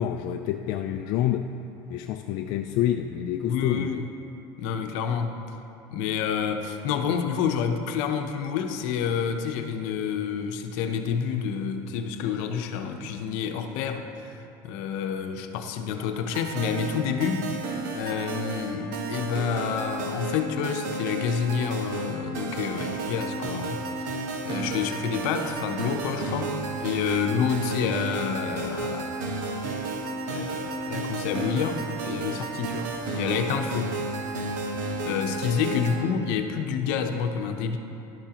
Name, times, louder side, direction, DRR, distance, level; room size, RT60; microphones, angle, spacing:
voice 1, 0.0-1.5 1.9-3.9, left 11 dB, 55° left, 5 dB, 0.4 m, -27 dB
voice 2, 3.4-4.1 4.6-5.3 5.9-14.3 14.6-17.5 17.9-24.2 24.4-29.3 30.3-33.9 35.1-37.8, left 7 dB, 70° left, 6 dB, 0.8 m, -29 dB
sound 1, 16.3-36.0, right 2 dB, 85° right, 1.3 m, -32 dB
12.0 x 11.5 x 3.0 m, 2.8 s
cardioid pair, 160°, 10 cm